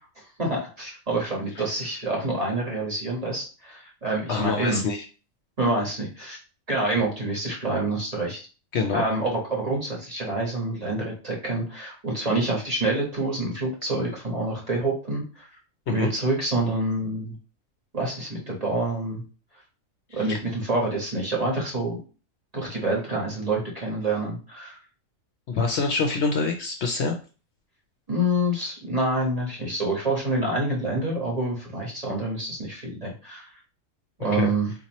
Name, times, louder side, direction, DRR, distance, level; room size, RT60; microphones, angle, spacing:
voice 1, 0.4-4.8 5.6-6.4 6.7-8.4 8.9-15.5 15.9-17.3 17.9-19.2 20.1-22.0 22.5-24.8 28.1-33.5 34.2-34.7, right 2 dB, 30° right, -3 dB, 1.3 m, -27 dB
voice 2, 4.3-5.0 8.7-9.1 15.9-16.1 20.1-20.4 25.5-27.2 34.3-34.5, left 4 dB, 65° left, 4 dB, 0.8 m, -25 dB
4.3 x 2.8 x 2.9 m, 0.35 s
omnidirectional pair, 1.4 m